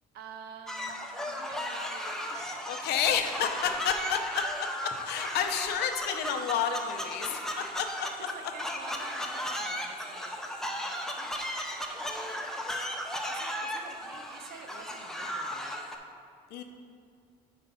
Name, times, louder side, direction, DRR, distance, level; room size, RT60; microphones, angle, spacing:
voice 1, 0.1-3.0 3.6-3.9 4.4-4.5 7.2-7.7 8.0-10.3 10.6-11.4 13.3-15.8, right 5 dB, 75° right, 5 dB, 0.8 m, -49 dB
sound 1, 0.7-16.0, equal, 5° left, 0.7 m, -36 dB
voice 2, 2.7-4.2 5.1-8.1 16.5-16.6, left 8 dB, 75° left, 6 dB, 0.7 m, -30 dB
7.6 x 4.5 x 5.3 m, 2.2 s
cardioid pair, 110°, 17 cm